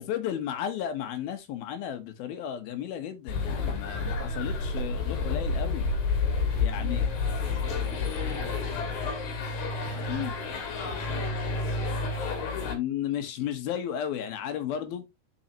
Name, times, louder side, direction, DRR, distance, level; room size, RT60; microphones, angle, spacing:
voice 1, 0.0-5.9 6.6-7.1 10.1-10.3 12.6-15.1, left 10 dB, 70° left, 2.9 m, -33 dB
sound 1, 3.3-12.8, left 4 dB, 55° left, 2.9 m, -30 dB
voice 2, 6.2-9.3 10.8-11.5, right 1 dB, 35° right, 1.4 m, -46 dB
7.4 x 6.3 x 2.9 m
omnidirectional pair, 4.6 m